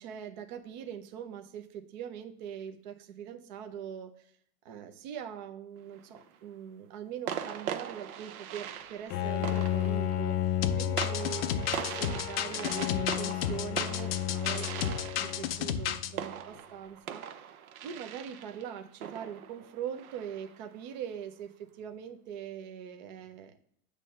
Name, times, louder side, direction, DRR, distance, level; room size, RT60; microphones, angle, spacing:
voice 1, 0.0-4.1 4.6-17.5 17.8-23.6, right 9 dB, 30° right, 6 dB, 0.6 m, -42 dB
sound 1, 5.8-6.4 7.3-20.7, right 9 dB, 65° right, 0.7 m, -41 dB
Bowed string instrument, 9.1-16.2, left 12 dB, 80° left, 0.7 m, -33 dB
sound 2, 10.6-16.1, left 9 dB, 45° left, 0.4 m, -32 dB
8.3 x 3.2 x 5.5 m, 0.65 s
supercardioid pair, 170°, 46 cm